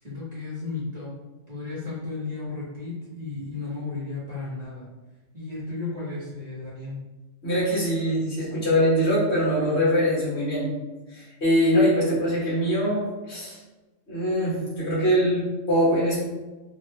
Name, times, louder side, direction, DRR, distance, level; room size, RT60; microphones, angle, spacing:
voice 1, 0.0-1.1 1.5-4.9 5.3-6.9, left 3 dB, 35° right, -9 dB, 1.1 m, -34 dB
voice 2, 7.4-10.7 11.1-13.6 14.1-16.2, equal, 55° left, -7 dB, 1.5 m, -23 dB
3.1 x 2.6 x 3.1 m, 1.1 s
omnidirectional pair, 1.4 m